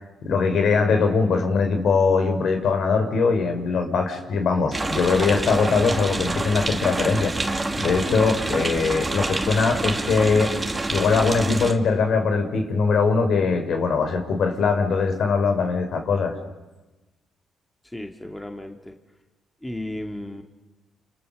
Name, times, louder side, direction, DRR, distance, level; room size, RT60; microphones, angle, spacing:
voice 1, 0.2-7.3 7.8-10.5 10.9-16.3, left 4 dB, 65° left, 6 dB, 4.4 m, -21 dB
sound 1, 4.7-11.7, right 2 dB, 20° right, 2.5 m, -27 dB
voice 2, 17.9-19.0 19.6-20.4, left 1 dB, 10° left, 4 dB, 2.4 m, -34 dB
30.0 x 29.0 x 6.7 m, 1.1 s
cardioid pair, 90°, 0 cm